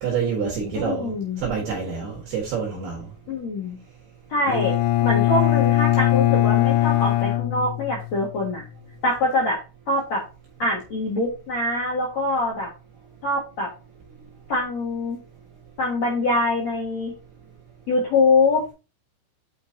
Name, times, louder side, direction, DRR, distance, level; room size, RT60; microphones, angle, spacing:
voice 1, 0.0-3.1, right 6 dB, 60° right, 3.2 m, -27 dB
voice 2, 0.7-1.4 3.3-3.8 4.3-4.7 5.0-8.6 9.0-9.6 9.9-10.2 10.6-12.7 13.2-13.7 14.5-15.2 15.8-17.1 17.9-18.7, left 2 dB, 60° left, 1.8 m, -24 dB
Bowed string instrument, 4.5-8.3, left 14 dB, 80° left, 3.0 m, -20 dB
8.7 x 5.3 x 2.8 m
omnidirectional pair, 6.0 m